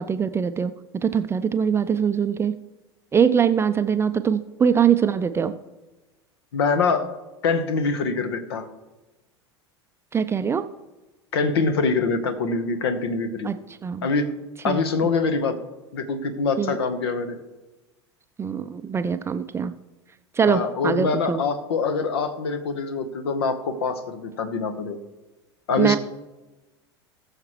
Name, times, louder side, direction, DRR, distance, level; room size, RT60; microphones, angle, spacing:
voice 1, 0.0-2.5 3.1-5.5 10.1-10.6 13.4-13.6 13.8-14.1 14.7-14.8 16.6-16.8 18.4-19.7 20.4-21.4 25.8-26.0, right 7 dB, 20° right, 11 dB, 0.5 m, -22 dB
voice 2, 6.5-7.1 7.4-8.7 11.3-13.5 14.0-14.3 14.6-15.6 15.9-17.4 20.5-25.0 25.7-26.0, left 4 dB, 65° left, 9 dB, 1.1 m, -24 dB
19.5 x 6.6 x 3.1 m, 1.1 s
figure-of-eight pair, 80°, 14 cm